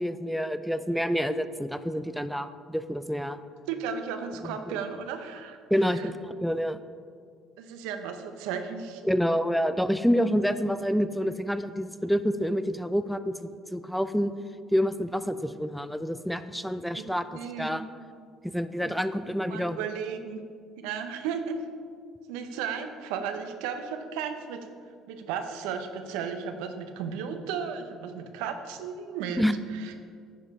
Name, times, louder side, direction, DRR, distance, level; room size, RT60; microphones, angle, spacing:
voice 1, 0.0-3.4 4.4-4.5 5.7-6.8 9.0-14.3 14.7-17.2 17.6-17.8 18.4-19.8 29.4-29.6, equal, ahead, 11 dB, 0.4 m, -28 dB
voice 2, 3.7-5.6 5.9-6.1 7.6-9.0 16.6-17.0 17.3-17.8 19.5-20.4 20.8-21.6 22.3-24.7 25.1-29.4 29.7-29.9, right 7 dB, 80° right, 7 dB, 0.6 m, -34 dB
10.0 x 5.0 x 4.1 m, 2.1 s
hypercardioid pair, 65°, 0 cm